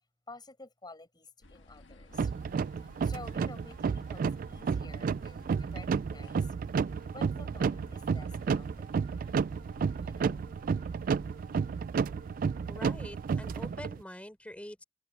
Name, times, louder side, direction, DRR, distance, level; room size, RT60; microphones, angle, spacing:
voice 1, 0.3-2.3 3.0-6.4 7.1-9.0 10.0-10.4, left 2 dB, 25° left, 6.9 m, -51 dB
sound 1, 1.4-13.7, left 1 dB, 75° left, 1.6 m, -54 dB
sound 2, 2.1-14.0, right 6 dB, 50° right, 0.3 m, -32 dB
voice 2, 12.7-14.8, left 1 dB, 5° left, 3.8 m, -45 dB
open air
head